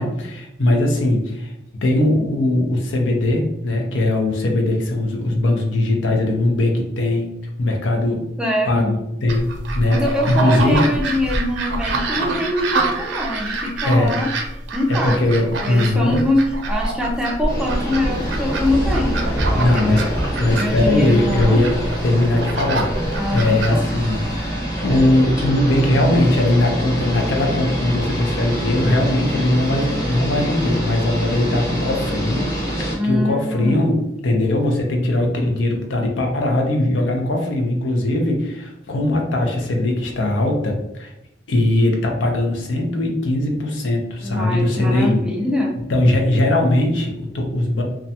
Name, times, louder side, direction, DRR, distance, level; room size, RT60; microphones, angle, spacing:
voice 1, 0.0-1.5 1.8-7.3 7.6-8.2 8.7-8.9 9.2-10.8 13.8-14.2 14.9-16.2 19.6-20.0 20.4-21.7 22.0-24.2 24.8-32.5 32.8-34.0 34.2-41.1 41.5-45.2 45.9-47.8, left 1 dB, 85° left, 2 dB, 0.6 m, -20 dB
voice 2, 8.4-9.1 9.9-14.3 14.7-15.2 15.6-20.0 20.6-21.6 23.2-23.9 33.0-34.1 44.2-45.7, left 1 dB, 5° right, -1 dB, 0.3 m, -23 dB
sound 1, 9.3-24.5, right 2 dB, 80° right, 0.5 m, -26 dB
sound 2, 17.5-32.9, equal, 20° left, 0.9 m, -25 dB
2.4 x 2.2 x 2.7 m, 0.86 s
head